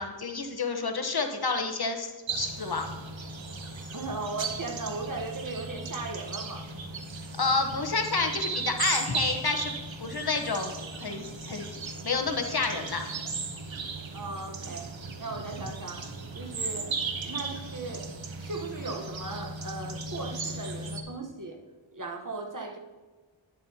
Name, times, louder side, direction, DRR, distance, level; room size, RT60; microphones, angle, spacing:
voice 1, 0.0-2.9 7.4-9.7 10.0-10.7 11.0-11.7 12.0-13.1, left 4 dB, 55° left, 4 dB, 1.1 m, -29 dB
sound 1, 2.3-21.0, right 4 dB, 80° right, 0.9 m, -36 dB
voice 2, 3.9-6.7 14.1-17.0 17.2-18.1 18.4-21.6 21.9-22.8, right 3 dB, 45° right, 3 dB, 1.1 m, -37 dB
10.5 x 7.5 x 2.8 m, 1.4 s
wide cardioid pair, 40°, 46 cm